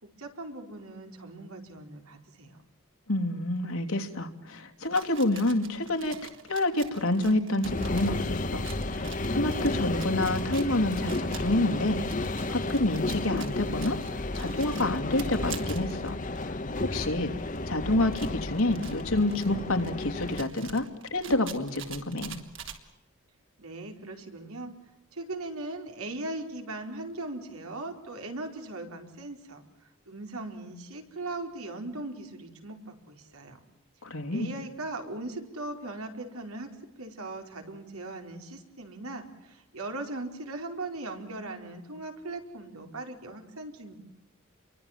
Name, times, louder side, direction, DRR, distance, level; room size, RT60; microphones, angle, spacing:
voice 1, 0.0-2.6 23.6-24.7 25.1-29.6 30.1-33.6 34.3-43.9, right 2 dB, 85° right, 4 dB, 4.7 m, -39 dB
voice 2, 3.1-6.2 6.5-12.0 12.5-14.0 14.3-16.2 16.4-16.5 16.8-17.3 17.7-20.9 21.1-22.4 34.0-34.5, left 1 dB, 80° left, 4 dB, 3.0 m, -28 dB
sound 1, 4.8-16.6 17.1-17.2 17.4-22.8, right 8 dB, 60° right, 3.5 m, -46 dB
sound 2, 7.6-20.4, left 2 dB, 35° left, 1.1 m, -32 dB
29.5 x 23.5 x 7.5 m, 0.90 s
head